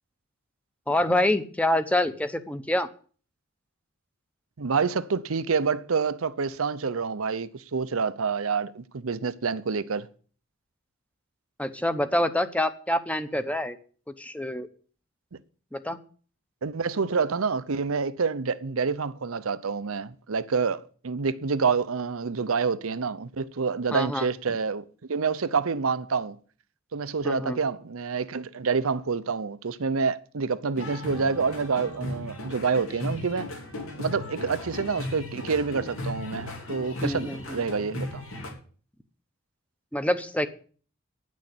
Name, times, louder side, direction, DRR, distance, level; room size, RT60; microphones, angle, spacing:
voice 1, 0.9-2.9 11.6-13.8 14.2-14.7 15.7-16.0 23.9-24.3 27.2-27.6 37.0-37.6 39.9-40.5, left 1 dB, 5° left, 0.8 m, -26 dB
voice 2, 4.6-10.1 16.6-24.8 25.1-26.4 26.9-33.5 34.0-38.2, right 5 dB, 85° right, 0.7 m, -27 dB
sound 1, 30.7-38.5, left 1 dB, 85° left, 3.0 m, -36 dB
10.0 x 6.3 x 8.5 m
head